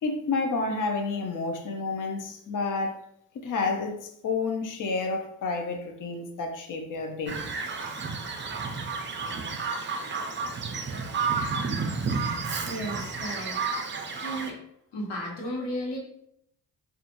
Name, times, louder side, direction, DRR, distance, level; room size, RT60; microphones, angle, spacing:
voice 1, 0.0-3.0 3.3-7.4, left 3 dB, 45° left, 3 dB, 0.6 m, -30 dB
Bird vocalization bird call bird song, 7.3-14.5, right 4 dB, 25° right, 0.4 m, -31 dB
voice 2, 12.6-14.6 14.9-16.0, equal, 70° left, -1 dB, 1.1 m, -35 dB
2.8 x 2.4 x 2.5 m, 0.73 s
cardioid pair, 70°, 46 cm